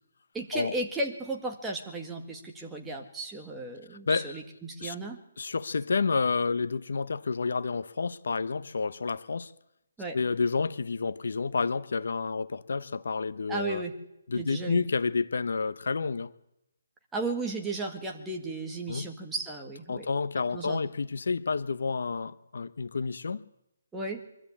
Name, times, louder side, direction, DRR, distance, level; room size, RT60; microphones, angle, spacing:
voice 1, 0.3-5.2 10.0-10.2 13.5-13.9 14.4-14.8 17.1-20.1 20.5-20.8 23.9-24.2, right 2 dB, 5° right, 1.8 m, -34 dB
voice 2, 3.9-4.4 4.8-4.9 5.4-9.5 10.1-13.8 14.3-16.3 18.9-19.1 19.9-23.4, left 4 dB, 70° left, 1.0 m, -30 dB
24.0 x 13.0 x 8.7 m
hypercardioid pair, 165°, 0 cm